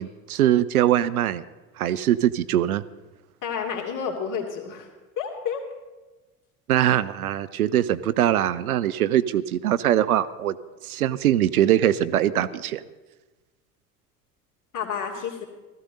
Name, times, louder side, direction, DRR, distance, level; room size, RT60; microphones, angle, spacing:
voice 1, 0.0-1.4 1.8-2.8 6.7-10.6 10.8-12.8, right 12 dB, 80° right, 16 dB, 0.6 m, -22 dB
voice 2, 3.4-4.9 5.2-5.6 14.7-15.5, left 7 dB, 45° left, 2 dB, 2.7 m, -30 dB
16.0 x 14.0 x 4.0 m, 1.2 s
figure-of-eight pair, 65°, 43 cm